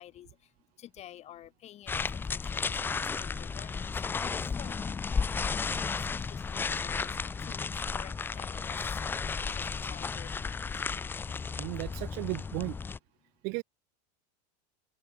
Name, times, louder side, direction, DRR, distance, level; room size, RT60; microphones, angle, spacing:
voice 1, 0.0-10.8 11.2-11.7, left 12 dB, 30° left, 4.5 m, -52 dB
sound 1, 1.9-13.0, left 5 dB, 10° left, 0.4 m, -33 dB
voice 2, 11.6-12.8 13.4-13.6, right 31 dB, 50° right, 0.9 m, -35 dB
open air
supercardioid pair, 150°, 20 cm